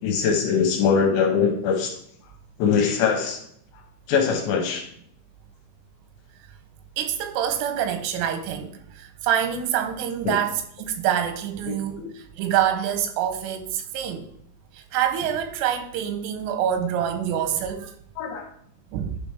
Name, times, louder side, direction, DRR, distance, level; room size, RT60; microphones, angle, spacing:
voice 1, 0.0-1.9 2.6-3.4 4.1-4.8 10.3-10.4 11.7-12.1 18.2-18.4, left 6 dB, 75° left, 2.9 m, -22 dB
voice 2, 7.0-14.3 14.7-17.9 18.9-19.2, right 9 dB, 90° right, 3.2 m, -26 dB
10.5 x 5.1 x 3.4 m
omnidirectional pair, 5.8 m